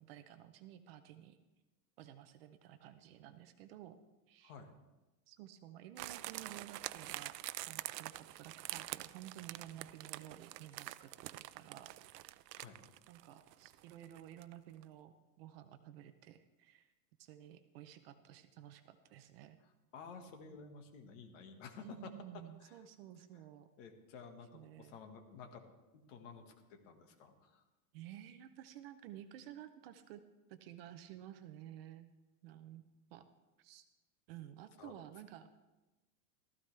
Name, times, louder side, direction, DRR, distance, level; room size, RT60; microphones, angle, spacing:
voice 1, 0.0-1.4 2.0-4.0 4.3-4.5 5.3-7.4 7.7-11.9 12.2-12.5 13.1-16.9 17.2-19.6 21.8-23.7 24.4-25.0 27.9-30.2 30.5-32.1 32.4-32.8 33.1-33.3 33.6-33.9 34.3-35.5, right 12 dB, 40° right, 9 dB, 0.6 m, -53 dB
sound 1, 6.0-14.6 14.8-14.9, right 16 dB, 80° right, 0.6 m, -46 dB
voice 2, 19.9-22.1 22.6-22.8 23.8-25.6 26.1-27.6 34.8-34.9, left 5 dB, 50° left, 5 dB, 1.7 m, -52 dB
15.5 x 14.0 x 3.3 m, 1.1 s
supercardioid pair, 165°, 48 cm